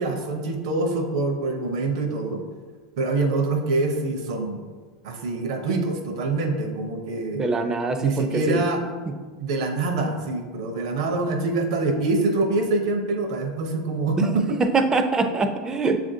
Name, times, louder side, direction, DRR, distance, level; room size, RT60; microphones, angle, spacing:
voice 1, 0.0-2.4 3.0-4.6 5.0-7.5 8.0-8.8 9.4-14.6, right 3 dB, 70° right, 5 dB, 0.7 m, -25 dB
voice 2, 7.3-8.6 9.1-9.2 14.2-14.3 14.6-16.0, right 3 dB, 20° right, 7 dB, 0.4 m, -23 dB
7.0 x 2.5 x 2.7 m, 1.5 s
hypercardioid pair, 105°, 3 cm